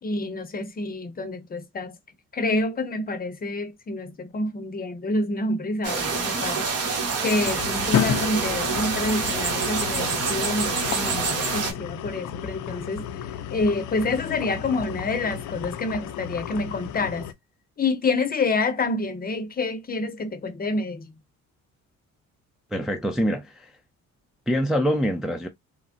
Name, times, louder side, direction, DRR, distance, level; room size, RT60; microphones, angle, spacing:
voice 1, 0.0-2.0 2.3-13.1 13.5-17.3 17.8-21.1, left 2 dB, 30° left, 0.7 m, -28 dB
sound 1, 5.8-11.7, right 4 dB, 55° right, 1.1 m, -26 dB
sound 2, 7.4-17.3, left 10 dB, 70° left, 0.4 m, -32 dB
voice 2, 22.7-23.7 24.5-25.5, equal, ahead, 0.3 m, -25 dB
3.2 x 2.0 x 2.5 m
cardioid pair, 90°, 30 cm